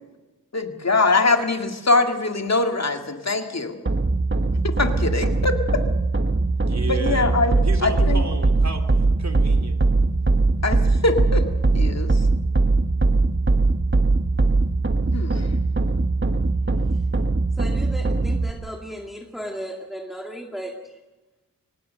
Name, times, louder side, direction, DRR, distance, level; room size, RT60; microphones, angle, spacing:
voice 1, 0.5-3.8 4.6-5.8 6.9-8.2 10.6-11.4 11.7-12.1 15.1-15.4, left 3 dB, 50° left, 5 dB, 2.2 m, -22 dB
sound 1, 3.9-18.5, right 3 dB, 35° right, 1.2 m, -21 dB
voice 2, 6.5-7.3 7.6-8.8 9.2-9.7, right 3 dB, 55° right, 5 dB, 2.9 m, -32 dB
voice 3, 17.6-21.0, equal, ahead, 1 dB, 2.2 m, -35 dB
24.0 x 19.0 x 6.6 m, 1.1 s
wide cardioid pair, 70°, 34 cm